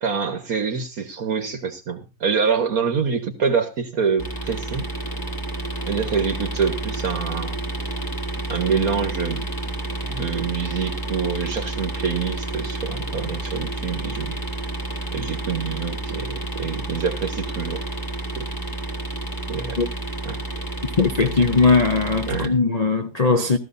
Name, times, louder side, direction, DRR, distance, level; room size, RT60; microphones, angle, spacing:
voice 1, 0.0-4.9 5.8-7.6 8.5-9.5 10.1-14.4 15.1-17.8 18.4-18.5 19.5-19.8 20.2-20.4 22.3-22.6, right 6 dB, 55° right, 1.7 m, -26 dB
sound 1, 4.2-22.5, right 2 dB, 10° left, 1.5 m, -30 dB
voice 2, 21.0-23.6, left 4 dB, 80° left, 0.3 m, -19 dB
16.0 x 14.0 x 2.6 m
omnidirectional pair, 2.0 m